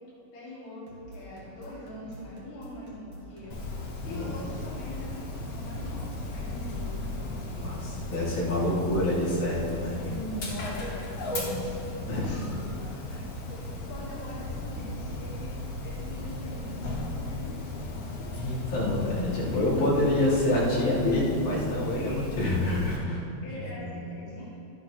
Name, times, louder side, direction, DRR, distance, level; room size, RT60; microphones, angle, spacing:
voice 1, 0.3-3.6 4.0-5.1 5.5-7.8 10.0-12.7 13.5-15.5 15.8-18.0 19.5-19.6 22.0-22.5 23.4-24.5, left 1 dB, 70° left, -9 dB, 3.2 m, -42 dB
sound 1, 0.8-13.7, right 1 dB, 45° right, 2.2 m, -48 dB
Dog, 3.5-23.0, left 2 dB, 55° left, 2.2 m, -36 dB
voice 2, 4.0-4.4 7.6-10.0 12.1-12.4 13.1-13.2 18.3-23.2 23.5-24.0, left 1 dB, 85° left, -10 dB, 4.3 m, -27 dB
12.5 x 11.5 x 2.8 m, 2.7 s
omnidirectional pair, 3.3 m